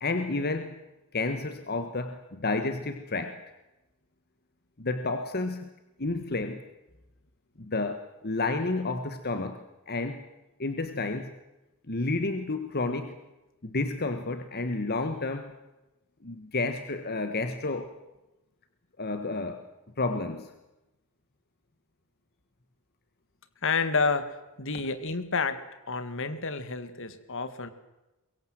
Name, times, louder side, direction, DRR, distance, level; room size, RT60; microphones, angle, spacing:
voice 1, 0.0-0.7 1.1-3.4 4.8-5.7 6.0-6.6 7.6-10.2 10.6-11.3 11.9-13.2 13.6-15.5 16.2-17.9 19.0-19.6 20.0-20.5, left 3 dB, 45° left, 8 dB, 1.5 m, -31 dB
voice 2, 23.6-24.3 24.6-25.6 25.9-27.7, left 4 dB, 60° left, 11 dB, 2.0 m, -29 dB
23.5 x 22.5 x 7.8 m, 0.99 s
head